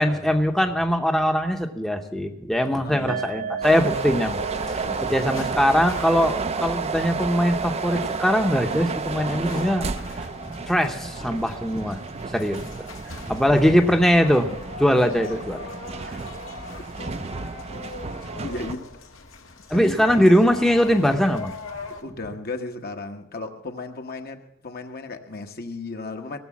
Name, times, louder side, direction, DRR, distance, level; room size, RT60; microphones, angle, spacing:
voice 1, 0.0-9.9 10.7-12.0 12.3-12.9 13.2-14.5 14.8-15.7 16.1-16.2 19.7-21.5, equal, ahead, 0.8 m, -21 dB
voice 2, 2.7-3.6 4.8-5.2 18.4-18.8 19.7-20.0 22.0-26.4, left 3 dB, 50° left, 1.1 m, -35 dB
sound 1, 3.1-10.3 10.5-10.7 11.1-11.2, right 6 dB, 80° right, 1.8 m, -38 dB
sound 2, 3.6-18.7, right 4 dB, 30° right, 0.5 m, -32 dB
sound 3, 3.8-22.0, left 3 dB, 85° left, 1.5 m, -41 dB
18.0 x 6.7 x 7.3 m
head